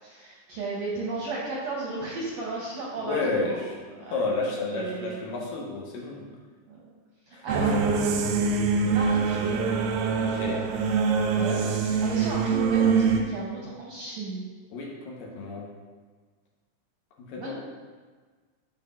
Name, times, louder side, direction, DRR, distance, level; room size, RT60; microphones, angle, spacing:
voice 1, 0.0-3.6 4.0-4.2 4.7-5.3 6.7-6.8 7.3-7.8 8.8-9.6 10.3-10.6 11.3-14.5 17.4-17.5, right 2 dB, 70° right, -4 dB, 1.7 m, -34 dB
voice 2, 3.0-3.8 4.1-6.3 7.3-7.7 10.2-10.6 14.7-15.7 17.3-17.5, left 3 dB, 80° left, -2 dB, 2.8 m, -31 dB
sound 1, 7.5-13.2, right 5 dB, 85° right, 2.3 m, -24 dB
11.0 x 5.2 x 2.5 m, 1.4 s
omnidirectional pair, 4.0 m